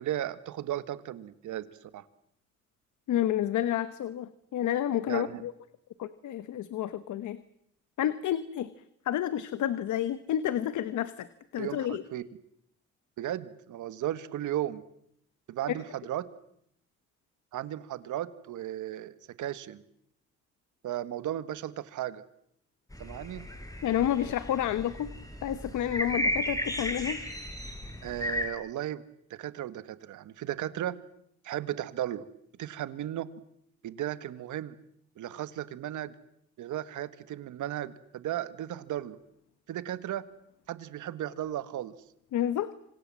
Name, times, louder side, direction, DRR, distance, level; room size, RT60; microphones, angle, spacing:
voice 1, 0.0-1.7 1.9-2.0 5.1-5.4 11.6-12.2 13.2-14.8 15.5-16.3 17.5-19.8 20.8-22.2 23.0-23.5 28.0-29.0 29.3-31.0 31.4-32.3 32.6-33.3 33.8-34.8 35.2-36.1 36.6-39.2 39.7-40.2 40.7-42.0, right 12 dB, 80° right, 14 dB, 1.7 m, -35 dB
voice 2, 3.1-5.5 6.0-7.4 8.0-8.7 9.0-11.3 11.5-12.0 15.7-15.8 23.8-25.1 25.4-27.2 42.3-42.7, left 11 dB, 75° left, 14 dB, 1.3 m, -30 dB
sound 1, 22.9-28.5, left 1 dB, 10° left, 5.3 m, -34 dB
27.0 x 26.0 x 7.7 m, 0.73 s
cardioid pair, 90°, 30 cm